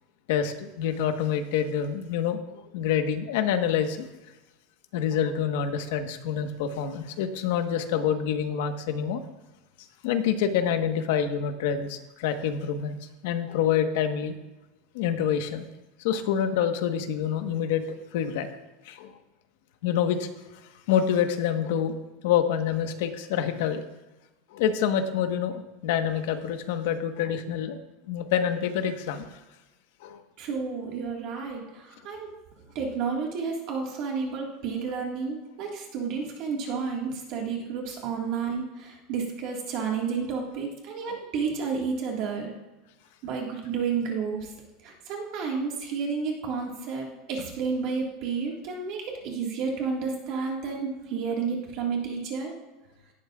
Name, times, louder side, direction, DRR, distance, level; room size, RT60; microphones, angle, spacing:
voice 1, 0.3-4.1 4.9-9.2 10.0-13.0 13.2-14.4 14.9-15.7 16.0-17.8 18.1-18.5 18.8-19.1 19.8-20.3 20.9-21.9 22.2-23.8 24.5-27.8 28.1-29.4 30.0-30.2 41.0-41.2, left 8 dB, 65° left, 7 dB, 1.1 m, -27 dB
voice 2, 30.4-32.3 32.7-42.5 43.2-44.5 44.8-52.5, right 5 dB, 40° right, 0 dB, 1.7 m, -31 dB
17.5 x 12.0 x 2.4 m, 1.1 s
supercardioid pair, 175°, 0 cm